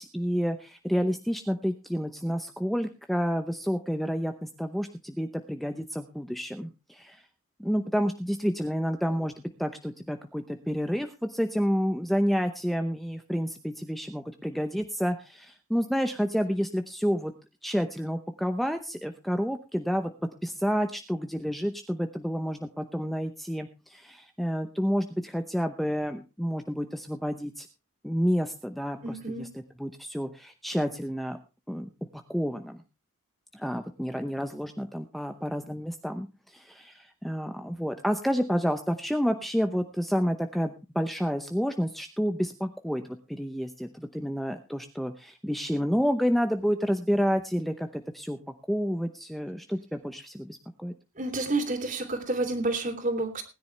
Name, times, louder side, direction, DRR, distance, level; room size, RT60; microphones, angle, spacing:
voice 1, 0.0-7.2 7.6-9.3 9.6-17.3 17.6-20.1 20.4-27.7 28.0-31.4 31.7-31.9 32.3-32.8 33.5-48.4 48.7-50.9, equal, ahead, 6 dB, 0.8 m, -29 dB
voice 2, 29.0-29.5 51.2-53.4, right 2 dB, 35° right, 7 dB, 3.2 m, -29 dB
20.0 x 10.5 x 3.3 m, 0.30 s
head